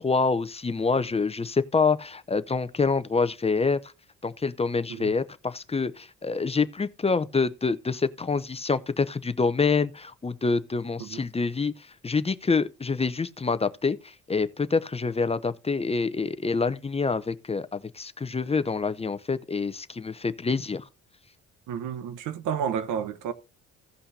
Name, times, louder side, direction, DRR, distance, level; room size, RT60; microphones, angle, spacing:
voice 1, 0.0-3.8 4.2-11.7 12.0-20.9, left 4 dB, 20° left, 0.6 m, -26 dB
voice 2, 21.7-23.3, right 8 dB, 85° right, 1.0 m, -31 dB
16.5 x 5.6 x 2.7 m
cardioid pair, 90°, 30 cm